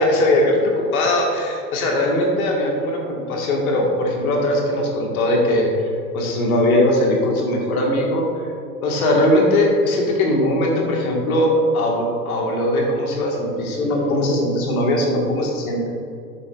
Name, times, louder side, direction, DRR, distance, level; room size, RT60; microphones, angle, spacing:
voice 1, 0.0-5.7 6.1-8.2 8.8-15.9, left 1 dB, 60° left, -1 dB, 1.8 m, -20 dB
11.5 x 7.6 x 2.5 m, 2.6 s
figure-of-eight pair, 100°, 48 cm